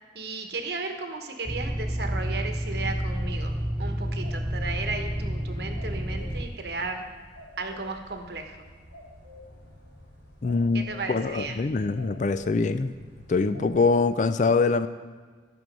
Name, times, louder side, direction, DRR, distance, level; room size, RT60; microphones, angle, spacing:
voice 1, 0.1-3.5 3.8-7.0 7.6-8.7 10.7-11.6, right 3 dB, 60° right, 5 dB, 1.0 m, -35 dB
sound 1, 1.5-6.5, equal, 5° right, 0.6 m, -30 dB
sound 2, 3.1-13.8, left 1 dB, 80° left, 3.6 m, -50 dB
voice 2, 10.4-10.8 11.1-12.9 13.3-14.9, left 4 dB, 40° left, 11 dB, 0.3 m, -23 dB
12.0 x 6.2 x 5.2 m, 1.5 s
head